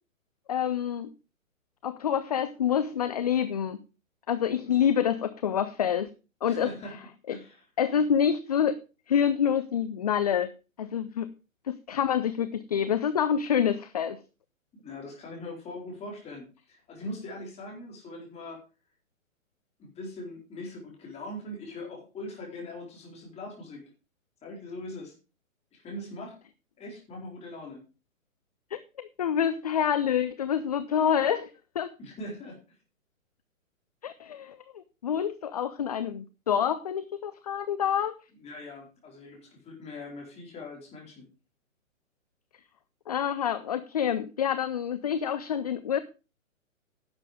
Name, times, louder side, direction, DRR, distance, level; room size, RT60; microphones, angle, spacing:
voice 1, 0.5-1.1 1.8-3.8 4.3-6.1 6.4-6.7 7.3-7.4 7.8-8.8 9.1-10.5 10.8-11.3 11.7-14.2 28.7-31.9 34.0-38.2 43.1-46.0, left 8 dB, 30° left, 13 dB, 0.5 m, -27 dB
voice 2, 6.4-7.6 14.7-18.6 19.8-23.9 24.4-25.1 25.7-26.4 26.8-27.8 32.0-32.6 38.4-41.3, left 1 dB, 15° left, -1 dB, 4.2 m, -41 dB
11.0 x 7.5 x 4.9 m, 0.32 s
figure-of-eight pair, 125°, 41 cm